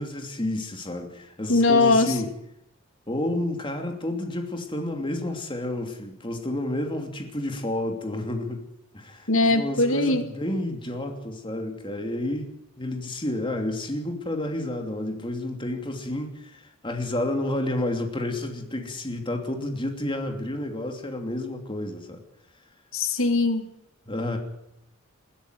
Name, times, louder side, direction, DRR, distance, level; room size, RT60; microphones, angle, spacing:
voice 1, 0.0-2.3 3.1-8.7 8.9-12.5 12.8-22.2 24.1-24.4, left 1 dB, 25° left, 4 dB, 2.9 m, -30 dB
voice 2, 1.5-2.1 9.3-10.2 22.9-23.7, left 2 dB, 70° left, 8 dB, 2.3 m, -20 dB
21.0 x 13.5 x 9.3 m, 0.80 s
head